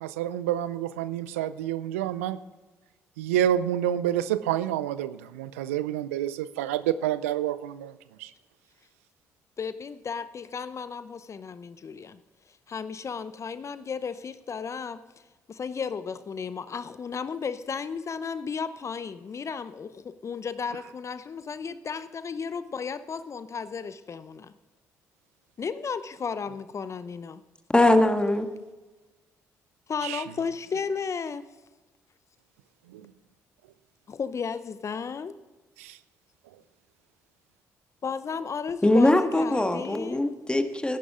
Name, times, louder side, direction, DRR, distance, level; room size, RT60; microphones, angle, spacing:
voice 1, 0.0-2.4 3.2-7.9 8.2-8.3 30.0-30.2 32.9-33.1 35.8-36.0, right 11 dB, 85° right, 16 dB, 0.5 m, -28 dB
voice 2, 9.6-12.2 12.7-15.0 15.5-24.5 25.6-27.4 29.9-31.4 34.1-35.3 38.0-40.3, left 6 dB, 40° left, 13 dB, 0.7 m, -34 dB
voice 3, 27.7-28.5 38.8-41.0, left 1 dB, 15° left, 7 dB, 1.7 m, -21 dB
15.0 x 11.0 x 3.7 m, 1.2 s
hypercardioid pair, 45°, 7 cm